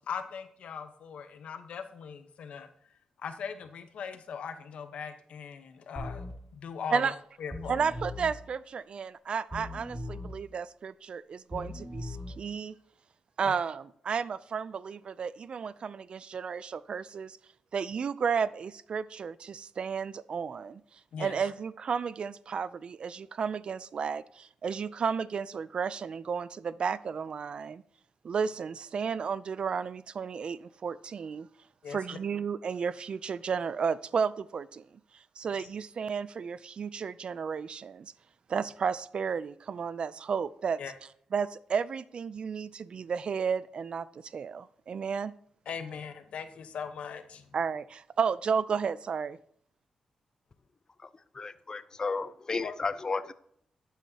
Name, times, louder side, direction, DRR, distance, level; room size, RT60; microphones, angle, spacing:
voice 1, 0.0-2.7 3.2-7.1 7.4-7.8 13.4-13.5 21.1-21.4 31.8-32.0 35.6-35.7 40.8-40.9 45.7-47.4 52.6-52.7, left 6 dB, 75° left, 8 dB, 1.0 m, -40 dB
sound 1, 6.0-6.3 7.5-8.3 9.5-10.3 11.5-12.3, left 1 dB, 5° right, 2.4 m, -39 dB
voice 2, 7.7-12.8 13.4-17.4 17.7-20.8 21.2-27.8 28.2-31.5 31.9-34.8 35.1-38.1 38.5-40.8 41.3-45.3 47.5-49.4, right 6 dB, 55° right, 17 dB, 0.4 m, -33 dB
voice 3, 51.3-53.3, left 4 dB, 35° left, 14 dB, 0.5 m, -33 dB
12.0 x 8.2 x 2.8 m, 0.67 s
cardioid pair, 90°, 2 cm